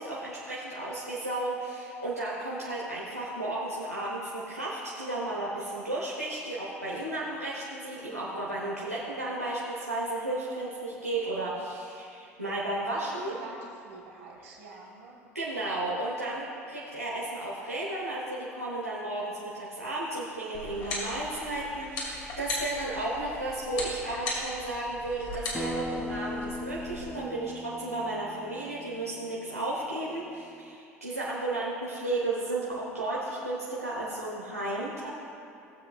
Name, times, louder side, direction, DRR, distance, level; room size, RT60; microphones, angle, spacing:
voice 1, 0.0-13.3 15.3-35.1, right 2 dB, 90° right, -7 dB, 1.1 m, -33 dB
voice 2, 12.9-15.2, right 2 dB, 60° right, -1 dB, 2.0 m, -46 dB
sound 1, 20.5-27.1, left 2 dB, 50° left, 2.4 m, -38 dB
Acoustic guitar, 25.5-30.7, left 2 dB, 5° left, 0.4 m, -39 dB
17.0 x 7.5 x 2.4 m, 2.8 s
figure-of-eight pair, 70°, 8 cm